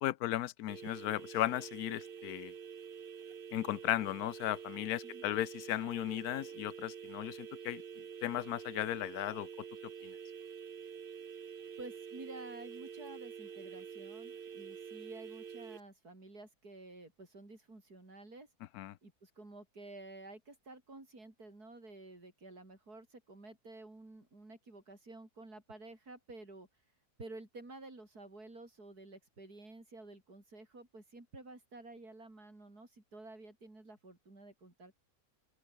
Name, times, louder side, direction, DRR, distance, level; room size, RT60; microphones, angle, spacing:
voice 1, 0.0-2.5 3.5-7.8 8.2-9.5 10.0-10.1 18.7-19.0, left 14 dB, 80° left, 1.2 m, -36 dB
sound 1, 0.7-15.8, right 7 dB, 40° right, 1.0 m, -47 dB
voice 2, 11.8-18.5 19.0-26.7 27.2-35.0, right 2 dB, 85° right, 6.6 m, -51 dB
open air
omnidirectional pair, 1.6 m